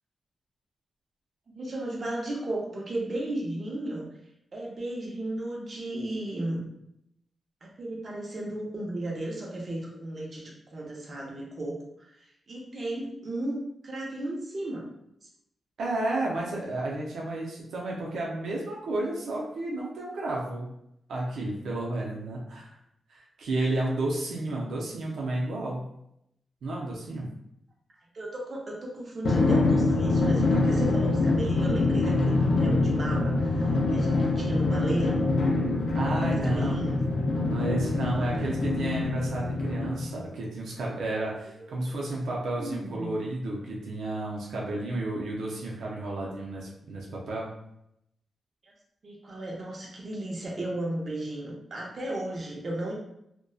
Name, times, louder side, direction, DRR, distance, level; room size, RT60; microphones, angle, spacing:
voice 1, 1.5-4.1 4.5-6.7 7.6-11.8 12.1-14.8 15.2-15.3 28.1-35.2 36.1-37.0 38.2-38.5 41.6-41.7 42.6-43.1 48.6-48.7 49.0-52.9, right 1 dB, 45° right, -2 dB, 0.6 m, -35 dB
voice 2, 15.8-20.7 21.1-22.8 23.1-25.8 26.6-27.3 35.9-36.8 37.5-47.5, right 2 dB, 90° right, -3 dB, 0.5 m, -32 dB
Drum, 29.2-40.3, left 2 dB, 75° left, 0.5 m, -25 dB
2.5 x 2.1 x 2.3 m, 0.79 s
cardioid pair, 95°, 0 cm